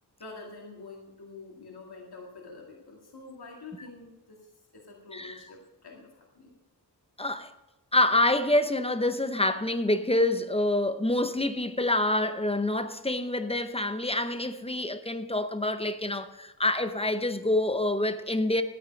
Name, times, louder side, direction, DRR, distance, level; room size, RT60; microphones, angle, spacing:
voice 1, 0.2-6.5, left 3 dB, 65° left, 2.1 m, -47 dB
voice 2, 7.2-7.5 7.9-18.6, left 1 dB, 15° left, 0.7 m, -27 dB
13.0 x 8.6 x 5.3 m
wide cardioid pair, 105°, 41 cm